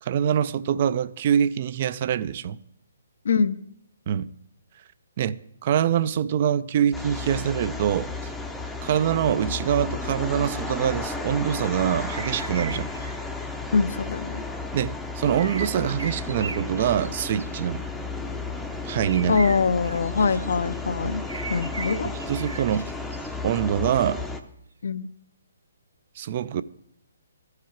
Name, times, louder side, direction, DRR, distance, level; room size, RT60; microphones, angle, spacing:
voice 1, 0.0-2.6 4.1-4.3 5.2-5.4 5.6-8.3 8.8-12.9 14.7-17.8 18.8-19.4 22.3-22.8 23.4-24.2 26.2-26.6, right 9 dB, 45° right, 0.3 m, -24 dB
voice 2, 3.2-3.6 13.7-14.4 19.3-21.2 21.5-22.1 24.8-25.1, left 5 dB, 65° left, 0.4 m, -23 dB
sound 1, 6.9-24.4, left 3 dB, 5° left, 0.5 m, -33 dB
sound 2, 11.4-13.1 15.3-17.6 19.0-20.8 21.3-23.3, right 4 dB, 80° right, 1.0 m, -38 dB
14.0 x 4.9 x 4.4 m
figure-of-eight pair, 140°, 0 cm